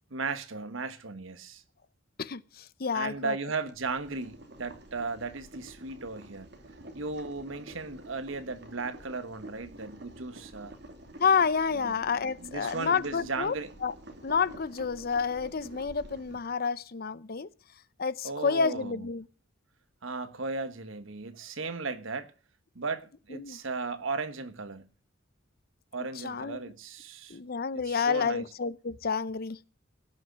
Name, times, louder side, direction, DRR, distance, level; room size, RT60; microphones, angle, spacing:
voice 1, 0.1-1.6 2.9-6.5 6.9-10.7 11.8-11.9 12.4-13.7 18.2-19.1 20.0-22.3 22.7-24.8 25.9-27.4 27.7-28.4, right 4 dB, 75° right, 1.3 m, -36 dB
voice 2, 2.2-3.4 11.2-13.5 13.8-13.9 14.2-17.5 18.0-19.3 23.3-23.6 26.2-26.6 27.3-29.6, left 5 dB, 50° left, 0.6 m, -29 dB
Boiling, 3.6-16.4, right 1 dB, 55° right, 2.6 m, -49 dB
17.0 x 6.5 x 8.2 m
head